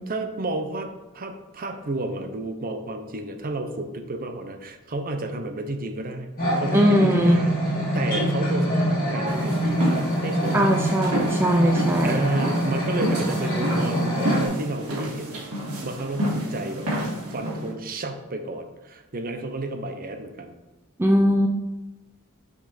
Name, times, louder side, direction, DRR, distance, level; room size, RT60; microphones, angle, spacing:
voice 1, 0.1-6.3 6.6-10.9 12.0-15.4 15.8-16.9 17.3-20.5, right 2 dB, 40° right, 6 dB, 0.8 m, -31 dB
sound 1, 6.4-14.5, equal, 40° left, 2.5 m, -24 dB
voice 2, 6.7-7.4 10.5-12.3 21.0-21.5, equal, 10° right, 1 dB, 0.4 m, -20 dB
sound 2, 9.3-17.7, right 1 dB, 80° right, 2.2 m, -30 dB
6.1 x 5.3 x 4.2 m, 1.1 s
head